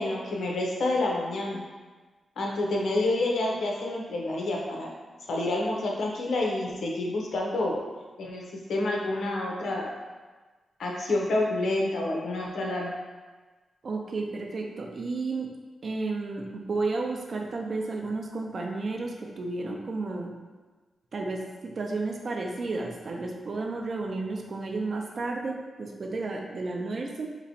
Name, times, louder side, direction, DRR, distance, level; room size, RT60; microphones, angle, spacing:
voice 1, 0.0-1.6 2.4-4.9 5.3-7.8 8.2-8.4 8.7-9.9 10.8-12.9, left 2 dB, 80° left, -2 dB, 0.8 m, -28 dB
voice 2, 13.8-15.5 15.8-20.3 21.1-27.3, right 3 dB, 40° right, 1 dB, 0.5 m, -32 dB
5.2 x 3.0 x 2.7 m, 1.3 s
wide cardioid pair, 170°, 0 cm